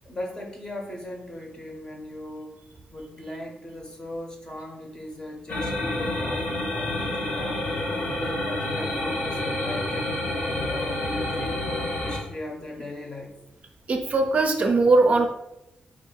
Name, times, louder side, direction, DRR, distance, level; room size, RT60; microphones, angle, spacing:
voice 1, 0.0-2.6 2.9-7.7 8.1-10.2 10.6-11.6 12.0-13.4, left 1 dB, 20° left, 1 dB, 0.8 m, -38 dB
sound 1, 5.5-12.2, left 1 dB, 55° left, 0.9 m, -28 dB
voice 2, 13.9-15.3, right 3 dB, 40° right, 3 dB, 0.5 m, -20 dB
4.6 x 2.4 x 4.5 m, 0.90 s
wide cardioid pair, 155°, 3 cm